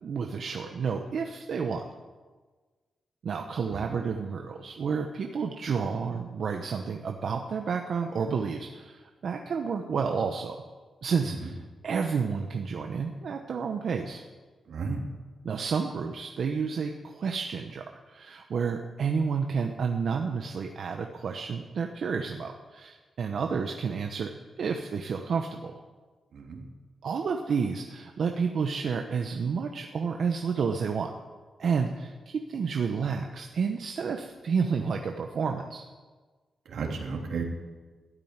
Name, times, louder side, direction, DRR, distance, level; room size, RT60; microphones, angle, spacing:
voice 1, 0.0-1.8 3.2-10.6 11.0-11.6 11.8-14.2 15.4-25.7 27.0-31.1 31.6-35.8, right 5 dB, 60° right, 4 dB, 0.9 m, -30 dB
voice 2, 14.7-15.0 26.3-26.6 36.7-37.4, right 5 dB, 85° right, 0 dB, 2.8 m, -33 dB
13.5 x 9.1 x 9.5 m, 1.4 s
wide cardioid pair, 145°, 0 cm